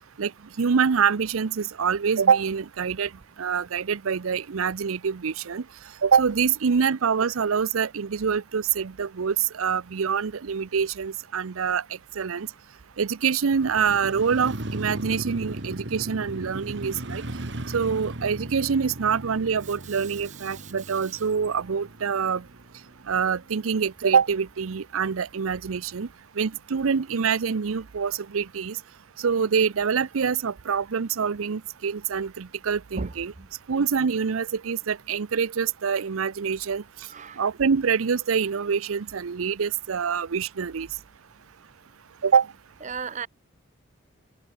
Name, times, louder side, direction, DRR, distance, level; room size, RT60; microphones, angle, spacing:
voice 1, 0.6-3.1 3.4-5.6 6.0-11.8 12.2-12.5 13.0-17.2 17.7-22.4 23.1-26.1 26.4-28.8 29.2-33.3 33.7-36.8 37.4-40.9 42.2-42.5, right 6 dB, 85° right, 0.6 m, -25 dB
Motorcycle, 13.5-23.6 24.0-24.1, right 1 dB, 55° right, 1.7 m, -37 dB
voice 2, 37.1-37.4 42.8-43.3, right 4 dB, 35° right, 0.8 m, -34 dB
head